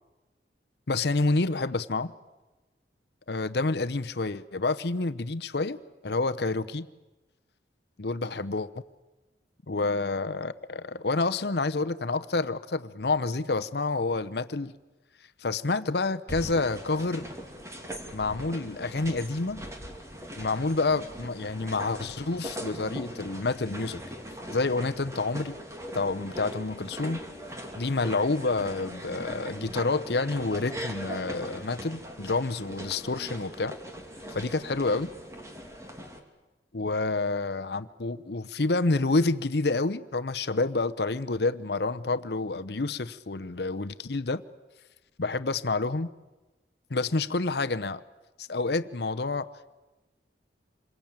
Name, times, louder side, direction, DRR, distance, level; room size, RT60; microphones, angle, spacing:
voice 1, 0.9-2.1 3.3-5.8 6.0-6.9 8.0-8.7 9.7-14.7 15.4-17.3 18.1-19.6 20.4-24.0 24.5-25.5 25.9-27.2 27.7-33.8 34.3-35.1 36.7-44.4 45.2-46.1 46.9-48.0 48.4-49.7, left 3 dB, 65° left, 10 dB, 0.8 m, -28 dB
sound 1, 16.3-36.2, equal, 15° right, 2.7 m, -40 dB
27.5 x 22.5 x 8.9 m, 1.1 s
head